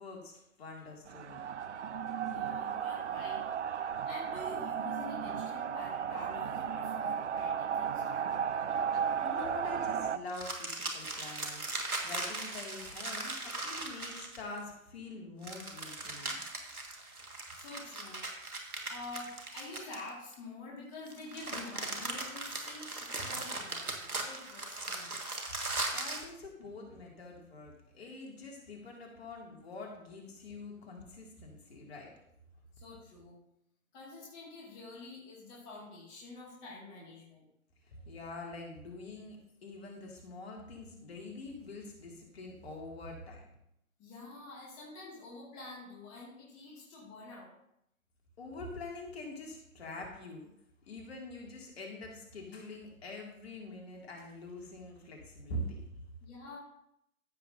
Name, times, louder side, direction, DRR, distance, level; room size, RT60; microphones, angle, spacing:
voice 1, 0.0-1.4 9.2-16.4 25.9-32.1 37.9-43.5 48.4-50.5 50.9-55.9, left 2 dB, 45° left, 0 dB, 2.3 m, -45 dB
sound 1, 1.1-10.2, right 7 dB, 55° right, 0.5 m, -34 dB
voice 2, 2.2-3.5 4.0-8.4 8.7-8.9 17.5-18.2 18.9-25.2 32.8-33.4 33.9-37.4 44.0-47.5 56.2-56.6, left 2 dB, 15° left, -5 dB, 2.0 m, -47 dB
sound 2, 10.3-14.6 15.4-20.3 21.1-26.3, right 2 dB, 90° right, 1.8 m, -39 dB
14.0 x 7.1 x 2.6 m, 0.77 s
figure-of-eight pair, 140°, 43 cm